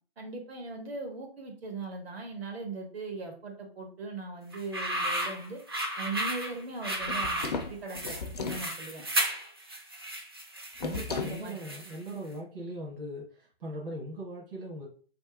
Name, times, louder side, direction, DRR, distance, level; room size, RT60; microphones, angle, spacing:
voice 1, 0.2-5.6 6.0-9.0 11.1-11.6, right 3 dB, 80° right, 2 dB, 1.7 m, -39 dB
sound 1, 4.5-12.1, right 1 dB, 25° right, 0.4 m, -34 dB
sound 2, 7.0-8.7 10.8-11.4, left 5 dB, 40° left, 0.4 m, -35 dB
voice 2, 10.8-14.9, right 1 dB, 60° right, -3 dB, 1.4 m, -39 dB
3.5 x 2.9 x 4.7 m, 0.43 s
hypercardioid pair, 170°, 30 cm